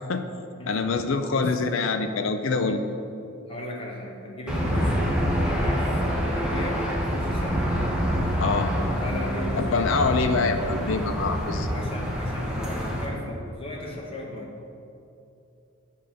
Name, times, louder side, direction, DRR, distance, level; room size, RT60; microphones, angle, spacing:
voice 1, 0.7-2.8 8.4-8.7 9.6-11.7, left 4 dB, 60° left, 7 dB, 0.4 m, -25 dB
voice 2, 1.3-1.6 3.5-4.9 5.4-7.6 9.0-10.4 11.7-14.5, left 1 dB, 25° left, -1 dB, 0.9 m, -36 dB
Aircraft / Engine, 4.5-13.0, equal, 5° right, 0.8 m, -26 dB
sound 1, 4.6-6.4 7.1-7.6 8.5-9.6 10.3-11.3 12.2-13.4, equal, 45° right, 0.9 m, -41 dB
7.6 x 3.6 x 6.6 m, 2.7 s
head